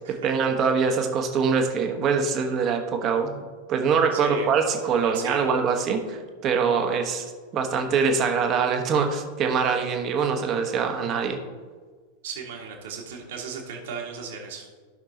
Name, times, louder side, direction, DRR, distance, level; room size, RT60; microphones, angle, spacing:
voice 1, 0.1-3.4 3.7-7.3 7.5-11.4, right 5 dB, 30° right, 4 dB, 1.2 m, -24 dB
voice 2, 4.1-4.5 5.0-5.5 12.2-14.7, right 6 dB, 55° right, 1 dB, 1.8 m, -36 dB
14.5 x 5.9 x 2.8 m, 1.4 s
figure-of-eight pair, 90°, 0 cm